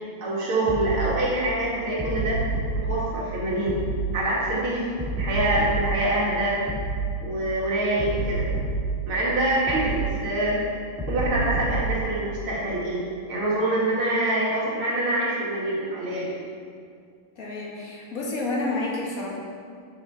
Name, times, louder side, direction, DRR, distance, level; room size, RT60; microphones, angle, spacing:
voice 1, 0.2-2.4 2.7-3.8 4.1-4.9 5.1-6.6 7.2-8.5 9.1-10.6 11.1-16.4, right 1 dB, 90° right, -5 dB, 2.8 m, -25 dB
sound 1, 0.7-1.0 2.0-2.8 3.7-4.0 5.0-5.9 6.7-7.0 8.0-8.9 9.7-10.0 11.0-11.9, right 2 dB, 5° right, 2.0 m, -28 dB
voice 2, 17.4-19.3, left 2 dB, 45° left, -3 dB, 1.8 m, -29 dB
8.0 x 7.0 x 4.5 m, 2.2 s
omnidirectional pair, 2.2 m